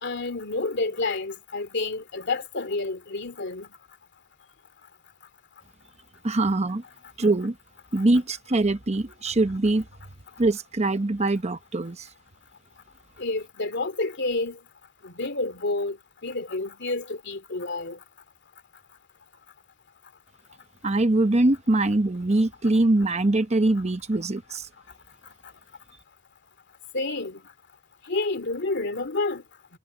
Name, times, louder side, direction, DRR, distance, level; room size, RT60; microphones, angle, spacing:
voice 1, 0.0-3.7 13.2-14.6 15.0-16.0 16.2-18.0 26.9-27.4 28.1-29.4, left 3 dB, 60° left, 2.6 m, -29 dB
voice 2, 6.2-6.8 7.2-7.5 7.9-9.8 10.4-12.1 20.8-24.7, right 2 dB, 35° right, 0.9 m, -23 dB
head